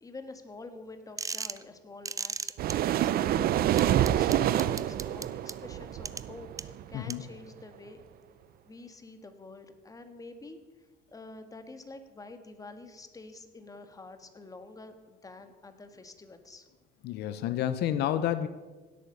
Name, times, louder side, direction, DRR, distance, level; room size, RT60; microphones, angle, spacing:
voice 1, 0.0-3.5 4.0-8.0 8.7-10.6 11.1-16.7, left 3 dB, 20° left, 8 dB, 1.6 m, -47 dB
sound 1, 1.2-1.6 2.0-2.7 3.8-5.5 6.0-6.2 6.6-6.7 7.1-7.2, right 4 dB, 20° right, 0.5 m, -34 dB
sound 2, 2.6-6.9, right 12 dB, 65° right, 0.6 m, -27 dB
voice 2, 17.0-18.5, left 11 dB, 75° left, 12 dB, 0.7 m, -29 dB
16.5 x 8.6 x 6.7 m, 1.3 s
cardioid pair, 110°, 17 cm